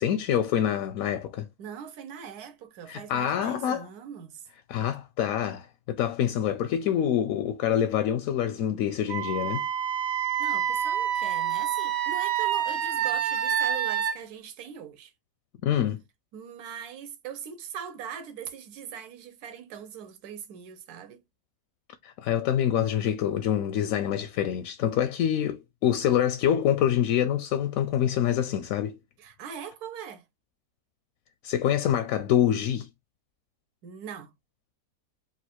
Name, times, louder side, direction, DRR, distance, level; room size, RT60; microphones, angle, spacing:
voice 1, 0.0-1.5 2.9-3.9 4.7-9.6 15.6-16.0 22.0-29.0 31.4-32.9, left 10 dB, 70° left, 0.8 m, -26 dB
voice 2, 1.6-4.5 10.4-15.1 16.3-21.2 29.2-30.2 33.8-34.3, right 8 dB, 70° right, 1.3 m, -41 dB
Wind instrument woodwind instrument, 9.1-14.1, right 9 dB, 90° right, 1.3 m, -27 dB
3.8 x 2.3 x 4.3 m
omnidirectional pair, 1.8 m